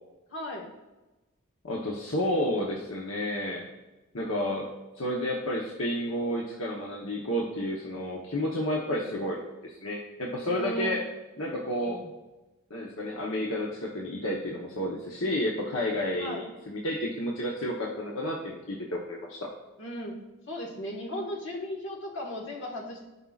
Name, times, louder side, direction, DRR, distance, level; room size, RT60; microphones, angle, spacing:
voice 1, 0.3-0.7 8.8-9.2 10.4-11.0 11.8-12.1 16.2-16.5 19.8-20.2 20.5-23.1, equal, 60° left, 0 dB, 1.6 m, -36 dB
voice 2, 1.6-3.7 4.1-4.7 5.0-11.0 11.4-12.0 12.7-19.5, left 1 dB, 75° left, -1 dB, 1.0 m, -31 dB
15.0 x 5.5 x 2.4 m, 1.1 s
head